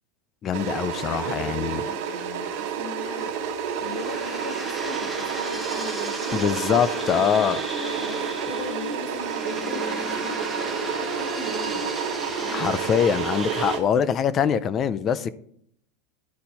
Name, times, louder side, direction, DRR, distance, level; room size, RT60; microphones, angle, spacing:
voice 1, 0.4-1.8 6.3-7.6 12.5-15.3, left 8 dB, 25° left, 0.4 m, -23 dB
sound 1, 0.5-13.8, right 7 dB, 55° right, 1.3 m, -30 dB
voice 2, 1.0-11.8 12.4-12.7 15.0-15.2, left 4 dB, 85° left, 1.6 m, -40 dB
sound 2, 3.5-13.8, right 1 dB, ahead, 1.0 m, -36 dB
Bowed string instrument, 6.4-13.0, left 8 dB, 60° left, 1.5 m, -41 dB
11.5 x 4.3 x 4.2 m
supercardioid pair, 160°, 0 cm